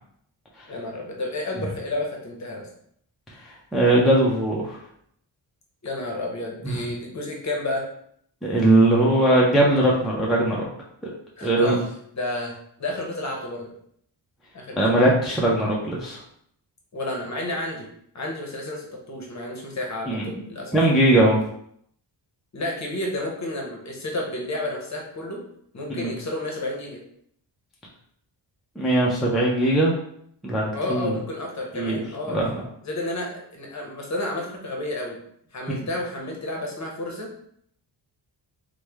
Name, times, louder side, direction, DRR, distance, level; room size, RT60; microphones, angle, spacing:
voice 1, 0.7-2.7 5.8-7.8 11.4-11.9 12.1-13.7 14.5-15.1 16.9-17.9 18.1-20.8 22.5-25.4 25.7-27.0 30.7-32.4 32.8-35.2 35.5-37.3, left 1 dB, 40° left, 0 dB, 0.7 m, -31 dB
voice 2, 3.5-4.8 6.6-6.8 8.4-10.7 11.0-11.1 11.4-11.8 14.7-16.2 20.1-20.4 20.7-21.4 26.0-26.1 28.8-29.9 30.4-31.1 31.7-32.0 32.3-32.6, right 1 dB, ahead, -4 dB, 0.4 m, -20 dB
3.0 x 2.1 x 3.3 m, 0.68 s
wide cardioid pair, 145°, 44 cm